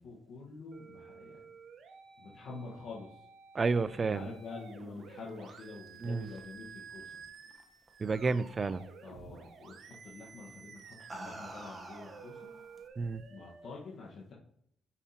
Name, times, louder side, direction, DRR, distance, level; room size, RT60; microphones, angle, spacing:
voice 1, 0.0-1.4 2.2-3.3 3.9-7.2 9.0-12.5 13.3-14.3, left 3 dB, 70° left, 1.4 m, -47 dB
sound 1, 0.7-13.7, right 5 dB, 65° right, 0.9 m, -53 dB
voice 2, 3.5-4.3 6.0-6.3 8.0-8.8 13.0-13.2, right 4 dB, 35° right, 0.4 m, -30 dB
sound 2, 5.0-7.9 8.2-8.7 9.9-10.1 10.8-12.9, right 1 dB, 15° right, 1.1 m, -50 dB
7.0 x 5.6 x 2.9 m
cardioid pair, 90°, 0 cm